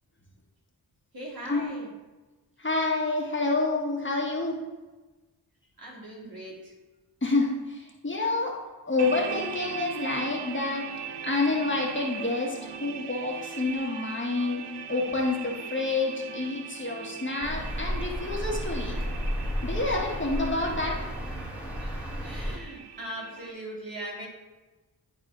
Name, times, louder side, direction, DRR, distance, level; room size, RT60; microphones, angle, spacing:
voice 1, 1.1-1.9 5.8-6.7 19.9-20.0 21.8-21.9 22.2-24.3, right 1 dB, 60° right, -3 dB, 2.3 m, -40 dB
voice 2, 2.6-4.6 7.2-8.6 8.9-10.9 11.2-14.6 14.9-19.0 19.6-21.0, left 3 dB, 30° left, -2 dB, 1.5 m, -28 dB
sound 1, 9.0-23.5, right 7 dB, 80° right, 0.7 m, -40 dB
sound 2, 17.4-22.6, equal, 5° right, 1.5 m, -32 dB
11.0 x 4.0 x 3.9 m, 1.2 s
cardioid pair, 70°, 40 cm